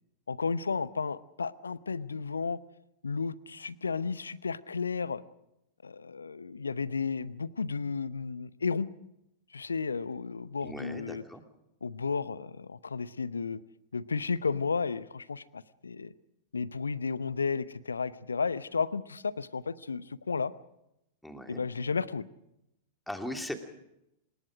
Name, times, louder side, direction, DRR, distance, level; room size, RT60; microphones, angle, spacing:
voice 1, 0.3-2.6 3.0-5.2 5.8-8.9 9.5-11.2 11.8-13.6 13.9-16.1 16.5-20.5 21.5-22.2, left 5 dB, 75° left, 18 dB, 0.8 m, -33 dB
voice 2, 10.6-11.4 21.2-21.6 23.1-23.5, left 1 dB, 5° left, 4 dB, 2.8 m, -39 dB
26.5 x 21.5 x 5.0 m, 0.83 s
figure-of-eight pair, 95°, 0 cm